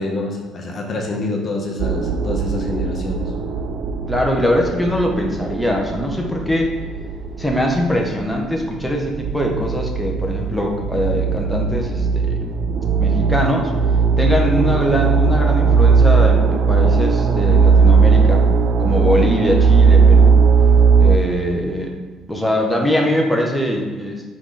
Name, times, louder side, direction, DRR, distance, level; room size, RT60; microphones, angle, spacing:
voice 1, 0.0-3.2, left 2 dB, 50° left, 1 dB, 0.8 m, -26 dB
sound 1, 1.8-21.2, right 5 dB, 65° right, 0.3 m, -17 dB
voice 2, 4.1-6.7 7.4-12.3 13.0-13.7 14.2-18.4 18.8-20.4 21.0-21.9 22.3-24.3, left 1 dB, ahead, -1 dB, 0.7 m, -21 dB
3.9 x 3.0 x 3.8 m, 1.3 s
hypercardioid pair, 55°, 0 cm